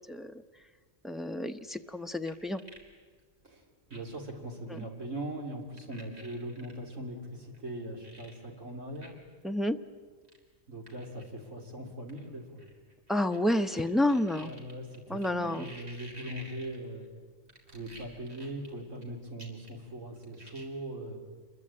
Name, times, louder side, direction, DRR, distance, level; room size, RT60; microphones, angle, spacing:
voice 1, 1.0-2.6 4.7-4.8 9.4-9.8 13.1-14.5 15.1-15.7, left 1 dB, ahead, 6 dB, 0.6 m, -29 dB
sound 1, 1.6-2.9 3.2-3.3 3.9-4.2 4.7-4.8 5.8-6.7 7.5-7.6 8.0-8.4 8.9-9.1 9.4-9.5 10.2-10.4 10.9-11.2 12.1-13.4 13.7-17.1 17.5-19.0 19.4-19.9 20.2-20.6, right 1 dB, 55° right, 4.3 m, -51 dB
voice 2, 3.9-9.2 10.7-12.6 14.4-17.1 17.7-21.2, right 1 dB, 80° right, 2 dB, 3.8 m, -40 dB
27.5 x 22.0 x 8.7 m, 1.5 s
omnidirectional pair, 1.3 m